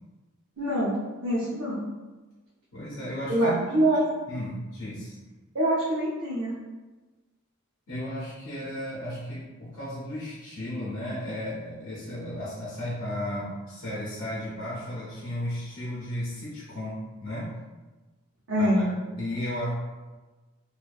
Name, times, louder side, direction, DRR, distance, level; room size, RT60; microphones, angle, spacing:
voice 1, 0.6-1.8 3.3-4.0 5.5-6.6 18.5-18.9, right 1 dB, 65° right, -9 dB, 0.7 m, -25 dB
voice 2, 2.7-3.6 4.3-5.2 7.9-17.5 18.6-18.8 19.2-19.7, left 1 dB, 70° left, -8 dB, 0.6 m, -34 dB
2.5 x 2.2 x 2.3 m, 1.2 s
head